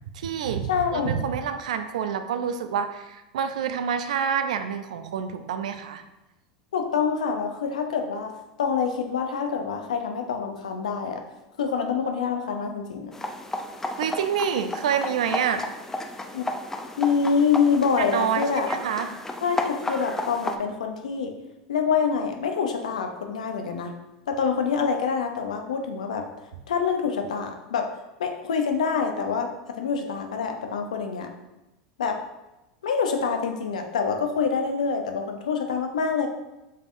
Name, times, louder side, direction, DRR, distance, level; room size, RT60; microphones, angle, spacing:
voice 1, 0.1-6.0 14.0-15.6 18.0-19.1, right 7 dB, 80° right, 8 dB, 0.4 m, -27 dB
voice 2, 0.7-1.2 6.7-11.2 11.6-13.1 16.3-16.4 17.0-18.7 19.4-21.3 21.7-23.9 24.3-26.3 26.7-27.9 28.2-29.5 29.8-31.3 32.0-32.2 32.8-36.3, left 6 dB, 85° left, 5 dB, 0.6 m, -26 dB
sound 1, 13.1-20.6, left 1 dB, 10° left, 0.4 m, -33 dB
5.3 x 3.5 x 2.5 m, 0.99 s
hypercardioid pair, 95°, 4 cm